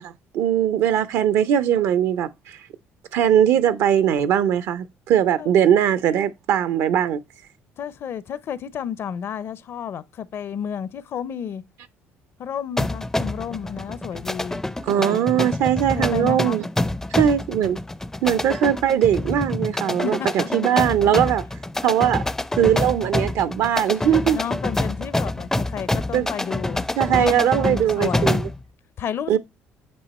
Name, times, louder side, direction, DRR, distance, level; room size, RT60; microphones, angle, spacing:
voice 1, 0.0-2.6 3.1-7.2 14.9-16.6 17.2-17.8 18.2-21.4 21.8-22.2 22.6-24.4 26.1-26.3 27.0-28.4 29.3-29.4, right 10 dB, 70° right, 0.5 m, -20 dB
voice 2, 7.8-11.6 12.4-14.6 15.9-16.6 20.0-20.7 24.3-26.8 27.2-28.4 29.0-29.4, left 8 dB, 55° left, 0.6 m, -31 dB
sound 1, 12.8-28.6, left 1 dB, 10° left, 0.4 m, -27 dB
8.5 x 2.9 x 4.1 m
supercardioid pair, 85°, 5 cm